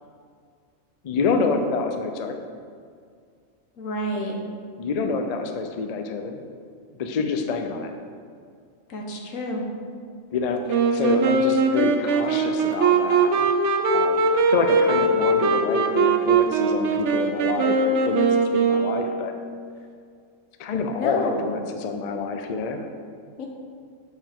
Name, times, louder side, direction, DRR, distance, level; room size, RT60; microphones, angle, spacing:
voice 1, 1.0-2.4 4.8-6.4 6.9-7.9 10.3-13.5 13.9-18.2 18.5-19.3 20.6-22.8, left 4 dB, 60° left, 5 dB, 0.4 m, -27 dB
voice 2, 3.8-4.4 8.9-9.7 20.9-21.4 23.4-23.5, left 1 dB, 80° left, 1 dB, 1.3 m, -29 dB
Wind instrument woodwind instrument, 10.7-19.4, right 3 dB, 65° right, 0.9 m, -21 dB
7.4 x 5.6 x 3.5 m, 2.1 s
omnidirectional pair, 1.4 m